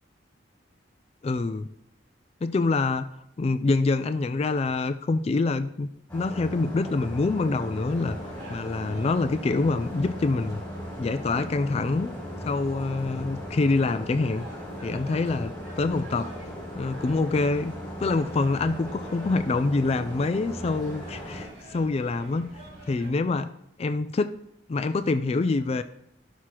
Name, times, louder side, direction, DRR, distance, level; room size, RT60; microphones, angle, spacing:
voice 1, 1.2-1.7 2.4-3.1 3.4-8.2 8.5-10.6 11.0-12.2 12.5-14.5 14.8-16.3 16.8-17.7 18.0-22.5 22.9-23.5 23.8-24.3 24.7-25.8, left 3 dB, 35° left, 11 dB, 0.3 m, -26 dB
sound 1, 6.1-21.5, equal, 10° left, 3.2 m, -38 dB
sound 2, 7.9-23.1, right 1 dB, 60° right, 2.7 m, -47 dB
13.0 x 6.1 x 2.9 m, 0.80 s
head